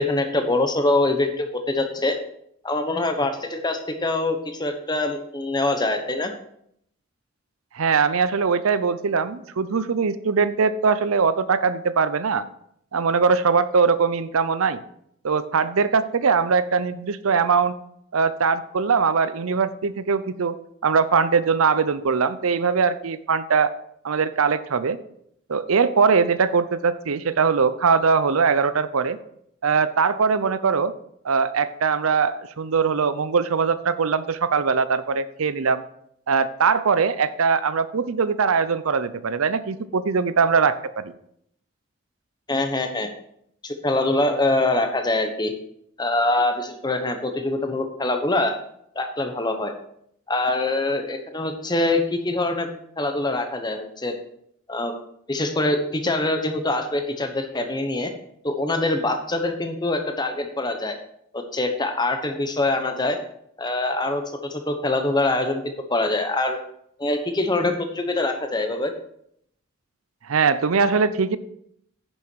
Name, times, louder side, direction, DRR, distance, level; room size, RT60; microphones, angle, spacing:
voice 1, 0.0-2.2 2.6-6.3 42.5-43.1 43.6-45.5 46.0-48.6 48.9-49.7 50.3-52.7 53.0-54.1 54.7-54.9 55.3-58.1 58.4-61.0 61.3-63.2 63.6-66.6 67.0-68.9, left 2 dB, 20° left, 6 dB, 1.0 m, -24 dB
voice 2, 7.7-12.5 12.9-14.8 15.2-17.8 18.1-20.6 20.8-23.7 24.0-25.0 25.5-29.2 29.6-30.9 31.2-35.8 36.3-41.1 70.3-71.4, right 5 dB, 90° right, 14 dB, 0.6 m, -21 dB
9.9 x 7.0 x 4.6 m, 0.70 s
head